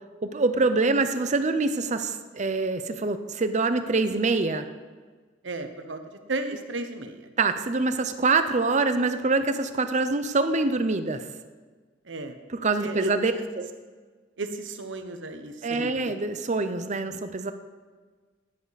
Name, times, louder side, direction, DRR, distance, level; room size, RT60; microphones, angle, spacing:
voice 1, 0.2-4.7 7.4-11.3 12.5-13.7 15.6-17.5, right 3 dB, 40° right, 10 dB, 0.7 m, -25 dB
voice 2, 5.4-7.2 12.1-12.3 12.8-13.4 14.4-16.1, right 2 dB, 75° right, 7 dB, 1.1 m, -34 dB
14.5 x 10.5 x 4.1 m, 1.4 s
head